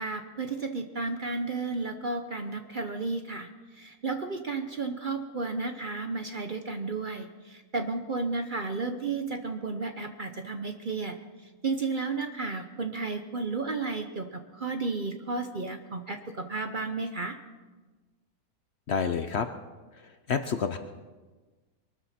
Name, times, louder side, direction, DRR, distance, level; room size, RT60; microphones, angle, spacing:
voice 1, 0.0-3.5 3.8-11.2 11.6-17.4, right 3 dB, 40° right, 6 dB, 0.8 m, -33 dB
voice 2, 18.9-19.5 19.9-20.8, left 6 dB, 55° left, 8 dB, 0.8 m, -29 dB
22.5 x 13.5 x 4.3 m, 1.3 s
omnidirectional pair, 1.6 m